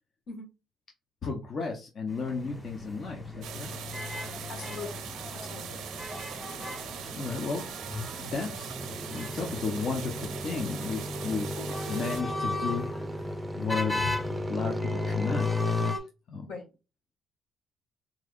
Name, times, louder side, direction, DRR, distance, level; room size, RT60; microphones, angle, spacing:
voice 1, 1.2-3.7 7.1-7.7 8.2-8.8 9.1-11.6 11.9-12.9 13.6-15.5 15.7-16.0 16.3-16.5, left 4 dB, 55° left, 1 dB, 0.8 m, -33 dB
sound 1, 2.1-16.0, left 1 dB, 20° left, 1.4 m, -39 dB
sound 2, 2.4-15.9, left 2 dB, 15° right, 0.5 m, -36 dB
sound 3, 3.4-12.2, right 8 dB, 85° right, 0.6 m, -41 dB
voice 2, 4.5-5.0 5.3-5.8 11.5-11.7 16.5-16.6, left 4 dB, 80° left, 1 dB, 1.6 m, -41 dB
3.7 x 3.1 x 2.4 m, 0.29 s
cardioid pair, 90°, 0 cm